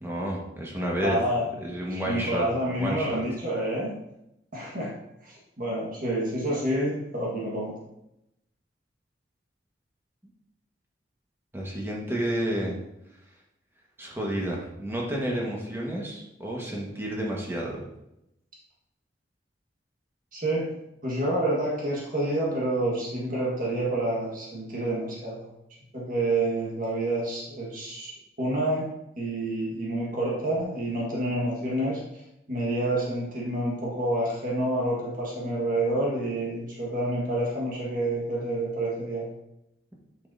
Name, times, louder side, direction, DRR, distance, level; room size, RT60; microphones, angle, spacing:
voice 1, 0.0-1.2 1.6-2.4 2.8-3.2 11.5-12.7 14.0-17.8, equal, 15° right, -3 dB, 1.5 m, -30 dB
voice 2, 1.0-1.4 2.0-3.9 4.5-4.9 5.2-7.8 20.3-20.7 21.0-25.5 25.9-28.9 29.2-32.0 32.5-39.3, right 1 dB, 50° right, -4 dB, 1.6 m, -28 dB
8.3 x 6.2 x 2.7 m, 0.84 s
head